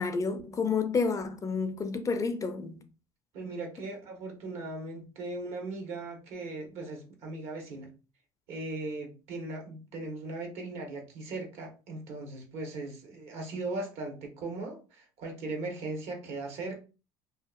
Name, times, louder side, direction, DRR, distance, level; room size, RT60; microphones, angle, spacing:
voice 1, 0.0-2.8, left 4 dB, 30° left, 0.4 m, -30 dB
voice 2, 3.3-7.9 8.5-16.8, right 2 dB, 70° right, 1.0 m, -38 dB
2.7 x 2.3 x 2.3 m
supercardioid pair, 80°, 12 cm